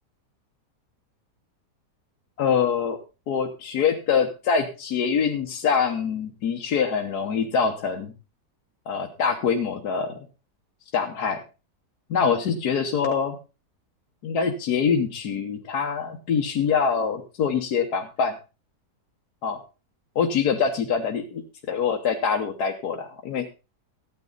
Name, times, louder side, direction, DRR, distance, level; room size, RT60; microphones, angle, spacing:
voice 1, 2.4-3.0 3.3-8.1 8.9-10.2 10.9-11.4 12.1-13.4 14.2-18.3 19.4-19.6 20.1-21.4 21.7-23.4, left 6 dB, 70° left, 2 dB, 1.5 m, -24 dB
13.5 x 9.7 x 3.9 m, 0.31 s
omnidirectional pair, 1.8 m